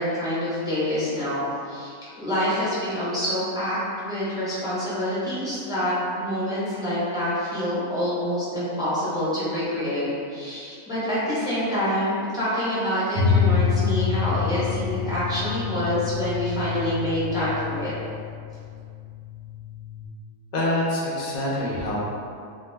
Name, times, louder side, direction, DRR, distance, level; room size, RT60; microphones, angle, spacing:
voice 1, 0.0-17.9, equal, 5° right, -11 dB, 0.5 m, -26 dB
sound 1, 13.2-20.1, left 6 dB, 65° right, 0.7 m, -27 dB
voice 2, 20.5-22.0, left 1 dB, 60° left, -6 dB, 0.4 m, -25 dB
2.2 x 2.2 x 3.3 m, 2.3 s
omnidirectional pair, 1.5 m